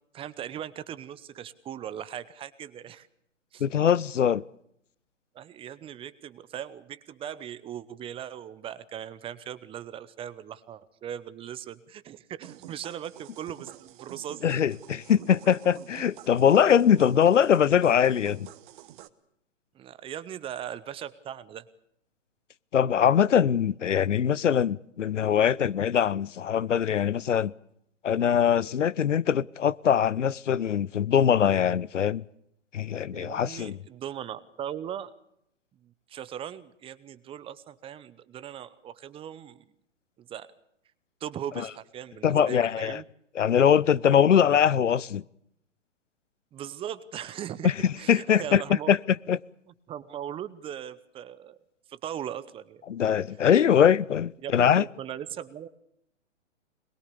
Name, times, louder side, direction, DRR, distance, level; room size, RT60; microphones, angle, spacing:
voice 1, 0.1-3.1 3.5-3.7 5.3-14.4 19.7-21.7 33.1-35.1 35.8-39.6 40.2-40.5 41.2-43.0 46.5-48.9 49.9-51.6 51.9-52.9 54.4-55.7, right 10 dB, 15° right, 0.9 m, -39 dB
voice 2, 3.6-4.4 14.4-18.5 22.7-27.5 28.0-32.2 32.7-33.8 42.2-43.0 43.4-45.2 47.6-47.7 48.1-48.6 48.9-49.0 49.3-49.4 52.9-54.8, left 8 dB, 75° left, 0.8 m, -22 dB
sound 1, 12.4-19.1, right 13 dB, 40° right, 1.5 m, -48 dB
23.0 x 21.5 x 6.9 m
figure-of-eight pair, 125°, 37 cm